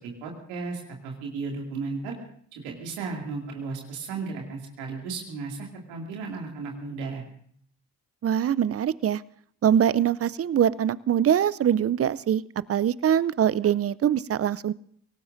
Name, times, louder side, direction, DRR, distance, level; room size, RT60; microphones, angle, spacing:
voice 1, 0.0-2.1 2.5-7.2, right 4 dB, 90° right, 0 dB, 2.5 m, -35 dB
voice 2, 8.2-9.2 9.6-12.4 12.7-14.7, right 9 dB, 35° right, 19 dB, 0.5 m, -23 dB
23.5 x 18.0 x 2.6 m, 0.63 s
hypercardioid pair, 45°, 41 cm